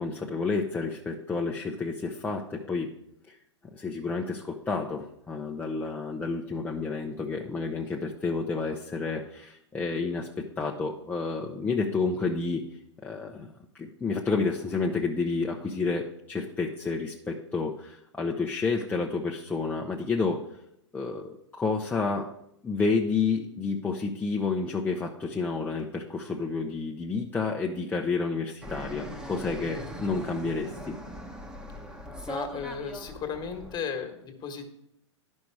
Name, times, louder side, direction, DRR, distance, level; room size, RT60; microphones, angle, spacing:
voice 1, 0.0-2.9 3.3-3.4 3.7-12.6 13.0-13.5 13.7-20.4 20.9-22.3 22.6-30.9, left 4 dB, 10° left, 0 dB, 0.7 m, -30 dB
Fixed-wing aircraft airplane, 28.6-33.8, equal, 5° right, 1.1 m, -40 dB
voice 2, 32.3-34.7, left 6 dB, 30° left, 6 dB, 1.5 m, -35 dB
10.5 x 5.4 x 4.7 m, 0.78 s
hypercardioid pair, 115°, 15 cm